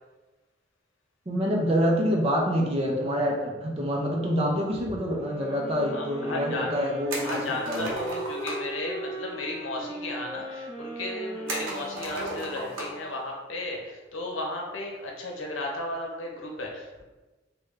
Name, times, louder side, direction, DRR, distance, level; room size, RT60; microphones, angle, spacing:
voice 1, 1.3-7.9, equal, 30° right, -1 dB, 0.5 m, -26 dB
sound 1, 5.1-13.1, right 1 dB, 5° left, 0.7 m, -38 dB
voice 2, 5.9-17.0, left 2 dB, 85° left, 0 dB, 0.7 m, -34 dB
sound 2, 7.1-8.8 11.5-13.1 13.4-13.5 15.1-15.4, right 2 dB, 85° right, 0.7 m, -35 dB
3.5 x 2.2 x 3.2 m, 1.2 s
head